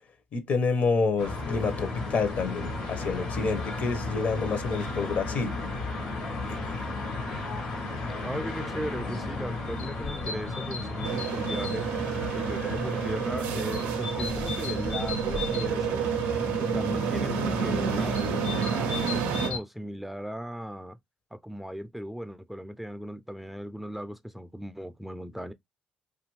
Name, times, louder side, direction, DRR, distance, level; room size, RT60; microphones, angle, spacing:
voice 1, 0.3-5.6 6.5-6.8, left 4 dB, 55° left, 0.7 m, -28 dB
sound 1, 1.2-19.6, left 3 dB, 85° left, 1.0 m, -34 dB
voice 2, 8.2-11.9 12.3-16.1 16.6-21.0 21.3-25.5, equal, 5° right, 0.3 m, -37 dB
sound 2, 11.0-19.5, right 7 dB, 90° right, 0.4 m, -30 dB
2.7 x 2.4 x 3.0 m
supercardioid pair, 70°, 3 cm